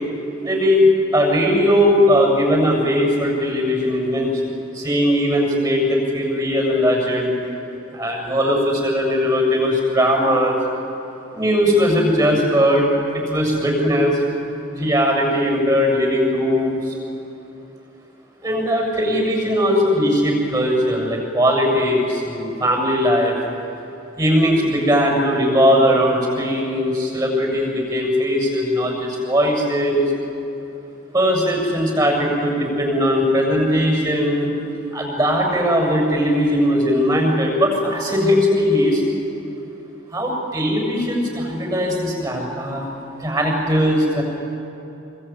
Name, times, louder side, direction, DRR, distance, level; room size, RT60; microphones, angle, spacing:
voice 1, 0.4-7.3 7.9-10.6 11.3-12.9 13.1-14.2 14.7-16.9 18.4-23.4 24.2-30.1 31.1-34.5 34.9-39.0 40.1-42.9 43.2-44.2, equal, 20° right, 1 dB, 7.3 m, -19 dB
26.0 x 24.5 x 9.0 m, 2.9 s
head